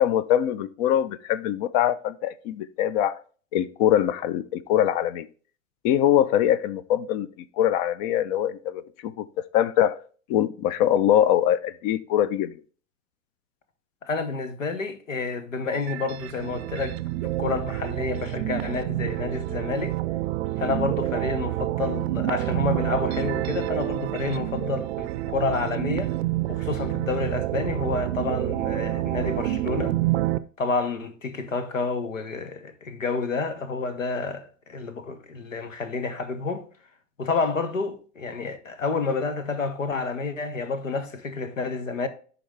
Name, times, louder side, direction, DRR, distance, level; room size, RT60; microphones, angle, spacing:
voice 1, 0.0-3.2 3.5-5.3 5.8-7.3 7.6-9.3 9.5-10.0 10.3-12.6, left 11 dB, 35° left, 0.4 m, -23 dB
voice 2, 14.0-17.0 17.2-20.0 20.6-26.2 26.5-30.0 30.6-36.7 37.2-42.1, left 4 dB, 85° left, 1.0 m, -29 dB
sound 1, 15.7-30.4, right 15 dB, 60° right, 0.5 m, -28 dB
11.0 x 3.9 x 3.3 m
figure-of-eight pair, 90°, 38 cm